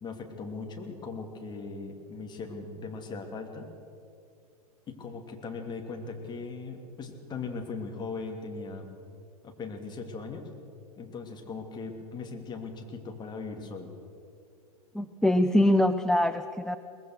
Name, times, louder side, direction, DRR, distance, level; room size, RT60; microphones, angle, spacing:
voice 1, 0.0-3.7 4.9-8.9 9.4-10.5 11.0-13.9, left 4 dB, 20° left, 3 dB, 2.8 m, -39 dB
voice 2, 14.9-16.8, left 1 dB, ahead, 11 dB, 0.5 m, -23 dB
22.5 x 20.0 x 6.3 m, 2.5 s
figure-of-eight pair, 100°, 20 cm